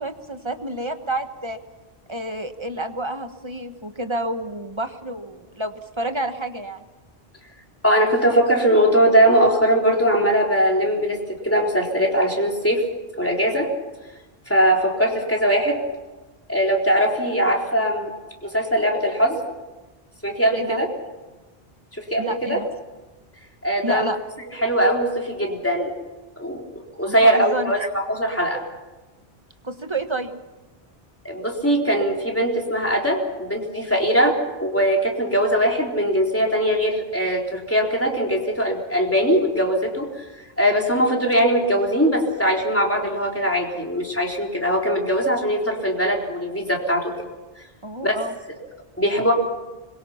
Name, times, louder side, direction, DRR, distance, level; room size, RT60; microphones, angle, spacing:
voice 1, 0.0-1.6 2.1-6.8 20.5-20.8 22.2-22.7 23.8-24.2 27.1-27.9 29.6-30.4 47.8-48.3, right 1 dB, 25° right, 7 dB, 1.4 m, -29 dB
voice 2, 7.8-11.2 11.4-12.9 13.2-13.7 14.5-15.8 16.5-18.1 18.4-19.4 20.2-20.9 22.0-22.6 23.6-24.1 24.6-25.9 26.4-28.6 31.2-47.1 48.0-48.2 49.0-49.3, equal, 10° left, 0 dB, 3.8 m, -21 dB
26.0 x 22.5 x 5.8 m, 1.2 s
omnidirectional pair, 1.1 m